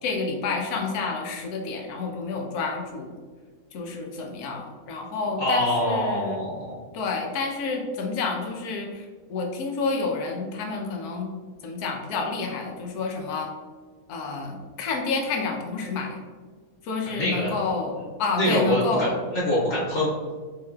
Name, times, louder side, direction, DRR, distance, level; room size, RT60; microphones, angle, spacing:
voice 1, 0.0-3.1 3.7-6.4 6.9-11.3 11.6-13.5 14.1-16.2 16.8-19.2, left 4 dB, 90° left, 2 dB, 1.2 m, -29 dB
voice 2, 5.4-6.7 17.1-17.5 18.3-20.1, equal, 50° left, -10 dB, 1.8 m, -24 dB
4.1 x 3.3 x 2.3 m, 1.5 s
omnidirectional pair, 1.5 m